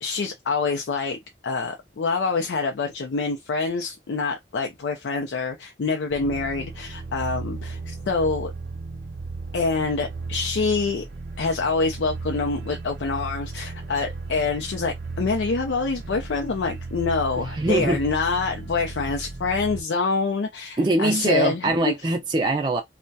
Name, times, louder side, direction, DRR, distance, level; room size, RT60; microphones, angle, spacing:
voice 1, 0.0-8.5 9.5-11.1 11.4-21.9, left 4 dB, 80° left, 0.4 m, -26 dB
sound 1, 6.1-19.8, right 3 dB, 70° right, 0.7 m, -35 dB
voice 2, 17.5-18.0 20.8-22.8, right 2 dB, 25° right, 0.4 m, -22 dB
2.2 x 2.1 x 2.6 m
head